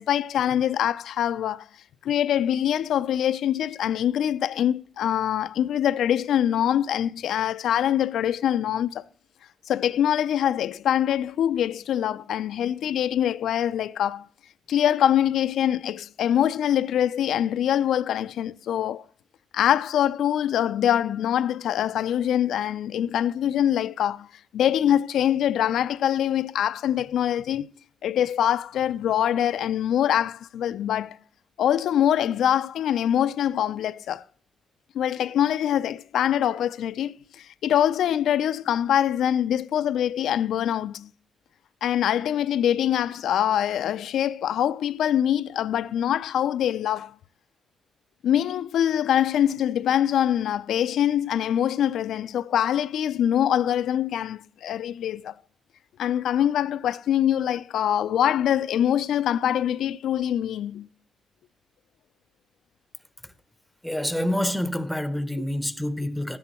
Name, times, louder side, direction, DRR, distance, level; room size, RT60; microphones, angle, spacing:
voice 1, 0.0-1.7 2.0-9.0 9.7-14.3 14.7-19.0 19.5-24.3 24.5-27.7 28.0-31.2 31.6-34.2 34.9-41.1 41.8-47.1 48.2-55.3 56.0-60.9, left 10 dB, 85° left, 0.4 m, -24 dB
voice 2, 63.8-66.4, left 1 dB, ahead, 0.7 m, -27 dB
12.5 x 10.5 x 2.9 m
cardioid pair, 130°, 0 cm